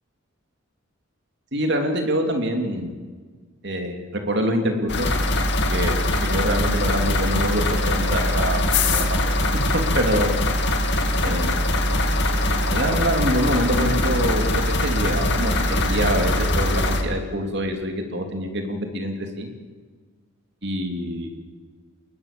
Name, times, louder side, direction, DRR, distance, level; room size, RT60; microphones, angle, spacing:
voice 1, 1.5-2.9 3.6-5.1 5.7-9.5 9.7-10.3 11.2-11.6 12.7-19.5 20.6-21.3, equal, 55° right, 4 dB, 3.2 m, -25 dB
sound 1, 4.9-17.0, left 1 dB, 55° left, 2.4 m, -22 dB
23.5 x 20.5 x 7.0 m, 1.5 s
head